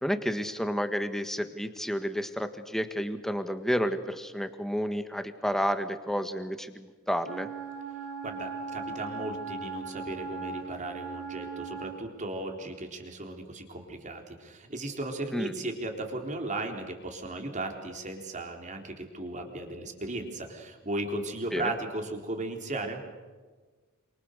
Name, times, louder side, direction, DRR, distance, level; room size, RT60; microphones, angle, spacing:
voice 1, 0.0-7.5 15.3-15.5 21.5-21.7, equal, ahead, 9 dB, 1.6 m, -31 dB
Wind instrument woodwind instrument, 7.2-12.0, right 4 dB, 75° right, 6.2 m, -38 dB
voice 2, 8.2-23.0, right 2 dB, 35° right, 4 dB, 3.9 m, -36 dB
28.0 x 27.5 x 6.7 m, 1.4 s
head